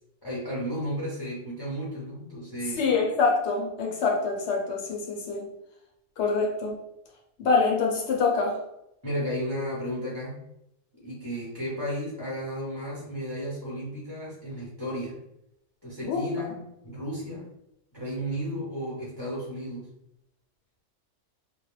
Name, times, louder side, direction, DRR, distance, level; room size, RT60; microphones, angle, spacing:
voice 1, 0.2-2.9 9.0-10.4 11.0-15.2 15.8-17.5 17.9-19.9, equal, 25° left, -6 dB, 0.5 m, -33 dB
voice 2, 2.8-5.4 6.2-6.8 7.4-8.5 16.1-16.2, left 4 dB, 65° left, 0 dB, 0.8 m, -25 dB
2.3 x 2.1 x 3.1 m, 0.83 s
omnidirectional pair, 1.2 m